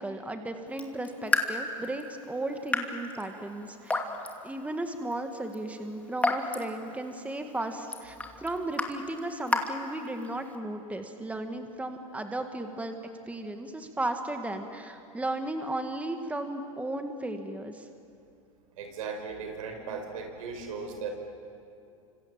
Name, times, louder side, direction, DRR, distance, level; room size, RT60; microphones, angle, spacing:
voice 1, 0.0-4.0 4.4-13.0 13.3-17.9, right 1 dB, 10° right, 5 dB, 2.0 m, -35 dB
Raindrop / Drip, 0.7-10.5, left 2 dB, 10° left, 2.6 m, -34 dB
voice 2, 18.7-21.1, right 5 dB, 75° right, 5 dB, 5.4 m, -37 dB
29.5 x 26.0 x 7.6 m, 2.5 s
hypercardioid pair, 105°, 18 cm